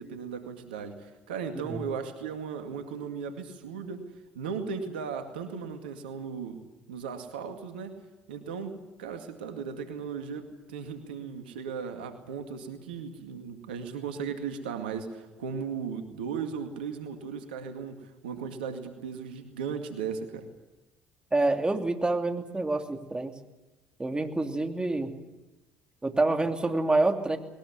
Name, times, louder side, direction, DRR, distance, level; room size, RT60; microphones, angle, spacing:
voice 1, 0.0-4.0 4.3-6.6 6.9-8.0 8.3-20.5, right 6 dB, 90° right, 6 dB, 2.1 m, -36 dB
voice 2, 21.3-23.3 24.0-25.1 26.0-27.4, right 2 dB, 20° right, 5 dB, 3.0 m, -27 dB
21.0 x 19.5 x 9.7 m, 1.0 s
hypercardioid pair, 60°, 5 cm